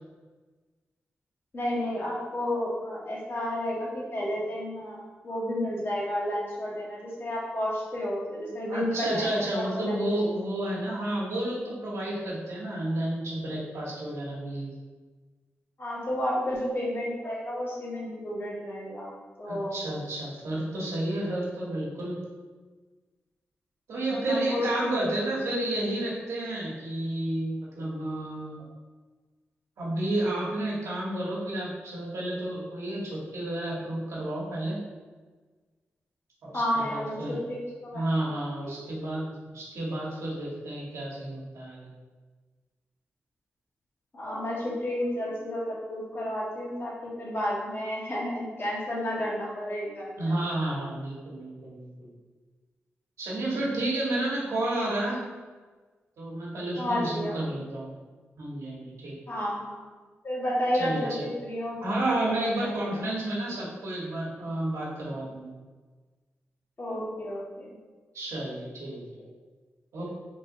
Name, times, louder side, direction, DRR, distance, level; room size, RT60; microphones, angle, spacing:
voice 1, 1.5-10.0 15.8-19.1 19.4-19.8 24.1-25.0 36.5-38.0 38.6-38.9 44.1-50.1 56.8-57.4 59.3-59.8 60.2-61.8 62.6-62.7 66.8-67.8, left 1 dB, 50° left, -5 dB, 1.4 m, -31 dB
voice 2, 8.7-14.7 19.4-22.2 23.9-28.6 29.8-34.8 36.4-37.4 37.9-41.9 50.2-52.1 53.2-55.2 56.2-57.9 58.4-59.1 60.7-61.3 61.8-65.5 68.1-69.0 69.9-70.1, right 1 dB, 80° right, -6 dB, 1.2 m, -31 dB
3.7 x 2.5 x 3.8 m, 1.3 s
supercardioid pair, 40°, 5 cm